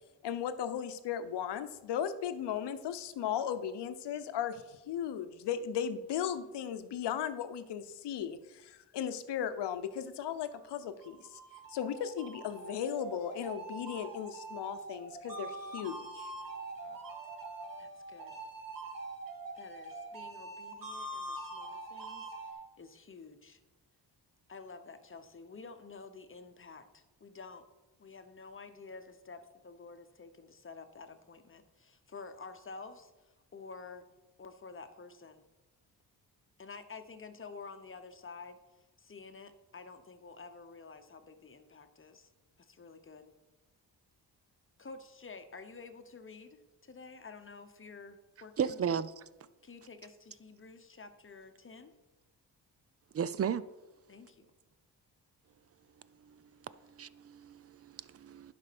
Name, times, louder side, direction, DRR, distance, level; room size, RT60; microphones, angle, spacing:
voice 1, 0.2-11.4 11.7-16.3 16.8-17.0, left 9 dB, 80° left, 0.8 m, -36 dB
sound 1, 10.8-22.5, right 2 dB, 55° right, 1.7 m, -44 dB
voice 2, 17.8-18.4 19.6-23.6 24.5-27.7 28.0-34.0 34.4-35.4 36.6-38.6 39.0-42.3 42.6-43.3 44.8-48.8 49.6-51.9 54.1-54.5, left 4 dB, 30° left, 1.0 m, -50 dB
voice 3, 48.6-49.1 53.1-53.6 56.3-56.4 56.9-58.5, right 7 dB, 35° right, 0.5 m, -34 dB
10.5 x 5.3 x 6.0 m
cardioid pair, 85°, 40 cm